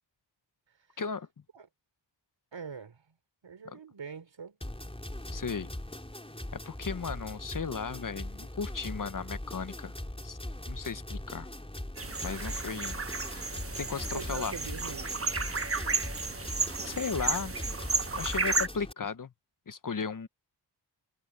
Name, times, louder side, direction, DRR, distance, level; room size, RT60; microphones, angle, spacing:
voice 1, 1.0-1.3 3.6-3.8 5.3-5.7 6.5-9.9 10.2-10.4 10.7-11.5 12.2-13.0 13.3-13.5 13.8-14.5 16.8-17.6 18.1-19.3 19.7-20.3, left 5 dB, 45° left, 0.9 m, -36 dB
voice 2, 2.5-3.0 3.4-4.6 14.1-15.1, right 6 dB, 90° right, 3.9 m, -43 dB
sound 1, 4.6-18.9, left 1 dB, 15° left, 4.2 m, -41 dB
sound 2, 12.0-18.7, right 3 dB, 30° right, 1.2 m, -33 dB
wide cardioid pair, 85°, 43 cm